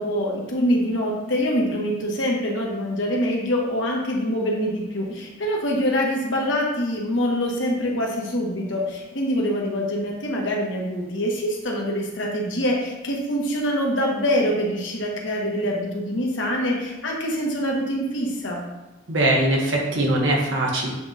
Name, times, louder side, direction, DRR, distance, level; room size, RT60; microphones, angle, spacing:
voice 1, 0.0-18.6, equal, 75° left, -2 dB, 1.1 m, -25 dB
voice 2, 19.1-20.9, right 1 dB, 75° right, -1 dB, 1.0 m, -21 dB
8.0 x 2.7 x 2.4 m, 1.1 s
head